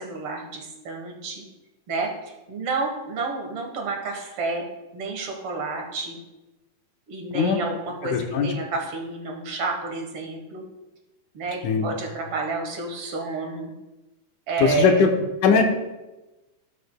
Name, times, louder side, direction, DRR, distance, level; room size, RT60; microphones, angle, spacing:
voice 1, 0.0-1.4 1.9-2.1 2.5-4.7 4.9-6.2 7.1-10.7 11.3-13.7 14.5-15.1, right 3 dB, 55° right, 2 dB, 1.9 m, -30 dB
voice 2, 8.1-8.5 11.6-11.9 14.6-15.1 15.4-15.6, left 5 dB, 80° left, 3 dB, 2.4 m, -19 dB
18.5 x 6.7 x 2.2 m, 1.1 s
omnidirectional pair, 3.5 m